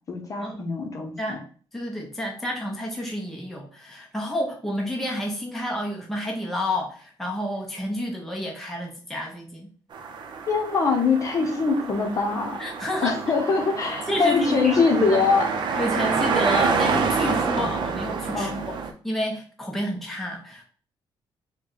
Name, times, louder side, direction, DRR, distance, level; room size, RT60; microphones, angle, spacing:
voice 1, 0.1-1.4 10.5-12.6 13.0-15.5 18.3-18.7, left 4 dB, 40° left, 2 dB, 0.9 m, -23 dB
voice 2, 1.7-9.7 11.4-11.7 12.6-13.2 14.1-15.2 15.8-18.5 19.0-20.6, left 1 dB, 5° left, -1 dB, 0.7 m, -29 dB
sound 1, 9.9-18.9, right 5 dB, 60° right, 0.6 m, -28 dB
4.6 x 2.2 x 3.9 m, 0.42 s
cardioid pair, 145°, 9 cm